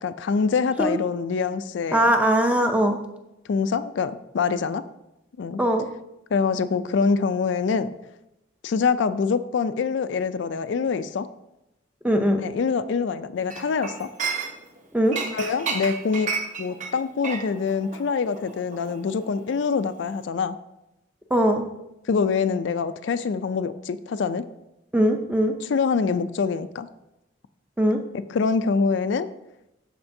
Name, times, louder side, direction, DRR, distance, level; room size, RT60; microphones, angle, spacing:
voice 1, 0.0-2.0 3.5-4.8 5.4-5.6 6.3-7.9 8.6-11.3 12.4-14.1 15.3-16.3 16.6-20.6 22.1-24.4 25.7-26.9 28.3-29.3, left 5 dB, 70° left, 12 dB, 0.4 m, -25 dB
voice 2, 1.9-3.0 5.6-5.9 12.0-12.4 14.9-15.2 21.3-21.6 24.9-25.6 27.8-28.0, right 1 dB, 5° right, 4 dB, 0.5 m, -20 dB
Chink clink, 13.5-14.8 15.1-19.7 20.0-20.2, right 5 dB, 40° right, 0.8 m, -32 dB
12.5 x 4.3 x 2.7 m, 0.89 s
head